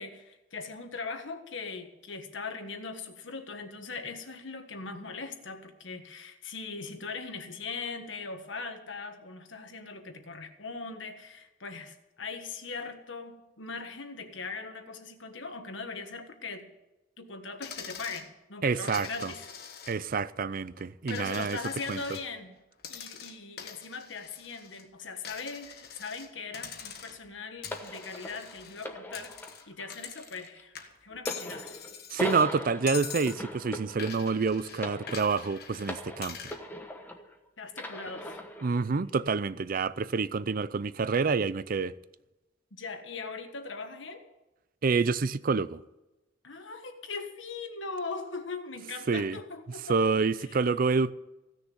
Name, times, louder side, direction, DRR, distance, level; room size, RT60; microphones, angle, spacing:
voice 1, 0.0-16.7 17.2-19.5 21.1-22.5 22.9-29.4 29.7-30.7 31.0-31.8 37.6-38.4 42.8-44.2 46.4-50.0 50.5-50.6, left 4 dB, 75° left, 1.5 m, -40 dB
Coin (dropping), 17.6-18.3 18.9-20.2 20.5-22.3 22.8-24.8 25.2-26.3 26.5-27.3 27.6-30.5 30.7-32.4 32.9-33.4 34.0-36.6, left 7 dB, 55° left, 1.4 m, -44 dB
voice 2, 18.6-19.3 19.9-21.6 21.9-22.0 32.1-36.5 38.6-41.9 44.8-45.8 49.1-49.4 49.9-51.1, right 4 dB, 50° right, 0.5 m, -28 dB
sound 1, 27.7-37.4 37.7-38.8 39.6-39.7, left 1 dB, 10° left, 1.1 m, -40 dB
16.0 x 6.6 x 9.4 m
head